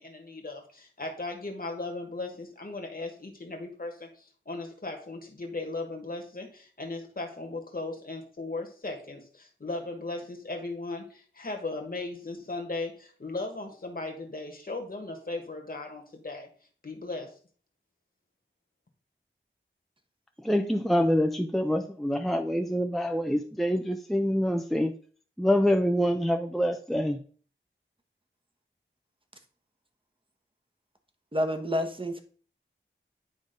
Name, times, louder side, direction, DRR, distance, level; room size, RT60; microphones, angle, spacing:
voice 1, 0.0-16.5 16.8-17.4, left 2 dB, 45° left, 1.6 m, -37 dB
voice 2, 20.4-24.9 25.4-27.2, equal, ahead, 0.6 m, -26 dB
voice 3, 31.3-32.2, equal, 25° right, 1.3 m, -28 dB
9.5 x 3.5 x 5.2 m
wide cardioid pair, 60°, 21 cm